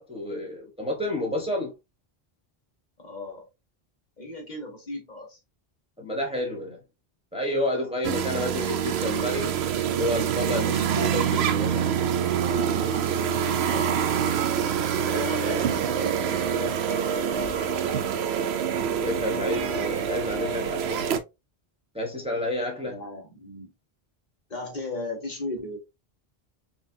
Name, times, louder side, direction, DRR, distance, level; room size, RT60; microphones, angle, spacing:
voice 1, 0.0-1.7 6.0-6.8 7.3-9.6 9.9-11.9 19.0-21.1 21.9-23.0, left 1 dB, 5° right, 0.9 m, -30 dB
voice 2, 3.0-3.4 4.2-5.4 13.4-14.1 14.9-17.6 22.8-23.7 24.5-25.8, left 2 dB, 45° left, 1.2 m, -36 dB
sound 1, 8.0-21.2, right 8 dB, 90° right, 0.8 m, -26 dB
5.2 x 2.3 x 2.6 m
omnidirectional pair, 1.0 m